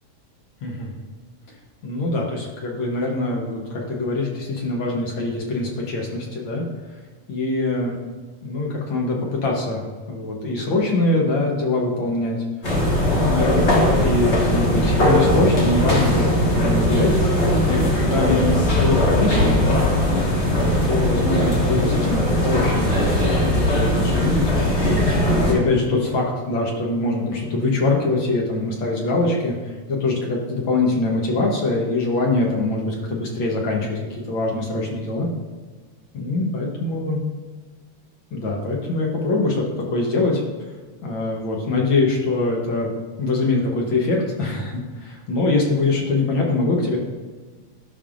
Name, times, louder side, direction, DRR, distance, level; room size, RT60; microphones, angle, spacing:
voice 1, 0.6-0.9 1.8-6.6 7.3-7.9 8.4-9.8 10.1-12.8 13.1-19.8 20.4-24.5 25.2-35.3 36.1-37.2 38.3-40.4 41.0-47.0, left 2 dB, 60° left, -1 dB, 1.4 m, -23 dB
sound 1, 12.6-25.5, left 1 dB, 35° left, 1.2 m, -19 dB
sound 2, 16.0-19.9 20.7-22.2, right 5 dB, 85° right, 2.2 m, -34 dB
13.5 x 5.4 x 2.5 m, 1.4 s
omnidirectional pair, 3.3 m